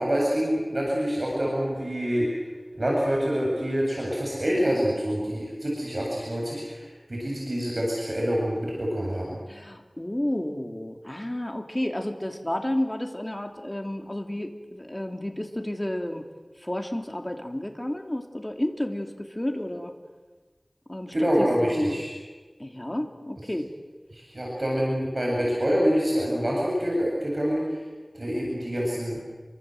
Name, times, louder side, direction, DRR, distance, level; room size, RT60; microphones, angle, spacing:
voice 1, 0.0-2.3 2.7-9.4 21.1-22.1 24.1-27.8 28.1-29.2, equal, 55° right, -3 dB, 7.8 m, -26 dB
voice 2, 9.5-16.3 16.6-19.9 20.9-22.0 22.6-23.7, left 1 dB, 25° left, 4 dB, 3.2 m, -31 dB
28.5 x 24.5 x 8.0 m, 1.3 s
wide cardioid pair, 50°, 0 cm